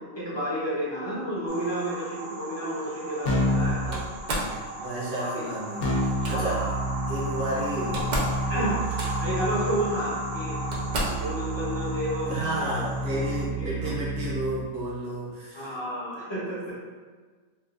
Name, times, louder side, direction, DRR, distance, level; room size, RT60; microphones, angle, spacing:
voice 1, 0.0-4.0 4.7-5.5 6.3-7.0 8.5-8.8 9.2-10.6 11.1-12.8 13.1-13.3 13.6-13.9 15.5-16.8, right 1 dB, 25° left, -10 dB, 0.7 m, -31 dB
sound 1, 1.5-13.5, right 2 dB, 85° right, 1.1 m, -37 dB
Keyboard (musical), 3.3-3.8 5.8-14.7, equal, 85° left, 1.1 m, -30 dB
Slam, 3.9-4.6 5.9-6.4 7.5-7.6 7.8-8.4 8.7-9.4 10.1-10.2 10.7-11.3, right 1 dB, 70° right, 0.4 m, -31 dB
voice 2, 4.3-6.7 7.1-8.1 12.3-15.8, right 1 dB, 50° right, -5 dB, 0.9 m, -32 dB
3.8 x 2.4 x 2.5 m, 1.5 s
omnidirectional pair, 1.5 m